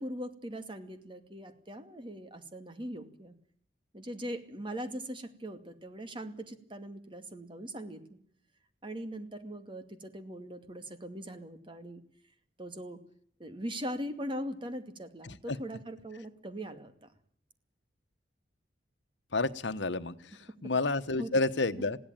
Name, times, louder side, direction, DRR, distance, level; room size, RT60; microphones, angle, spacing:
voice 1, 0.0-3.3 3.9-8.2 8.8-12.0 12.6-13.0 13.4-17.1 21.2-21.4, equal, 30° right, 8 dB, 2.4 m, -41 dB
voice 2, 19.3-20.1 20.6-22.0, left 3 dB, 80° left, 10 dB, 1.2 m, -29 dB
20.5 x 16.5 x 9.1 m, 0.62 s
head